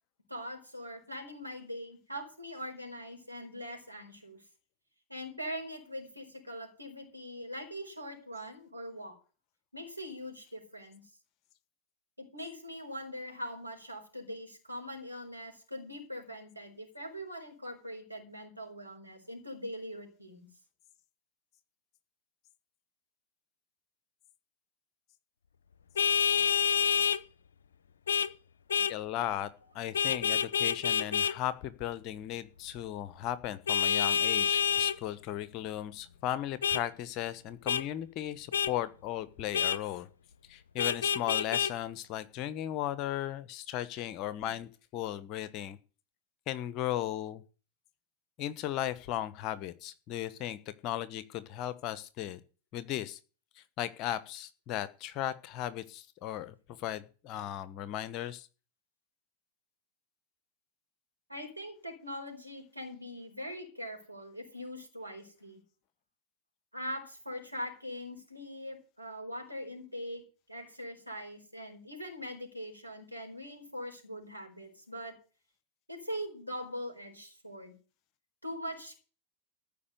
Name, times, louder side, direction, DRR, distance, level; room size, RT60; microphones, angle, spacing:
voice 1, 0.3-4.4 5.1-9.2 9.7-11.1 12.2-20.5 61.3-65.6 66.7-75.2 75.9-77.7 78.4-79.0, equal, 90° right, 2 dB, 4.6 m, -42 dB
Vehicle horn car horn honking, 26.0-27.2 28.1-28.3 28.7-28.9 29.9-31.3 33.7-35.0 36.6-36.8 37.7-37.8 38.5-38.7 39.5-39.8 40.8-41.7, left 7 dB, 65° left, 0.7 m, -27 dB
voice 2, 28.9-29.5 29.7-40.1 40.5-45.8 46.5-47.4 48.4-52.4 52.7-53.2 53.6-58.5, left 12 dB, 40° left, 15 dB, 1.2 m, -36 dB
14.0 x 5.5 x 9.6 m, 0.36 s
figure-of-eight pair, 90°, 0 cm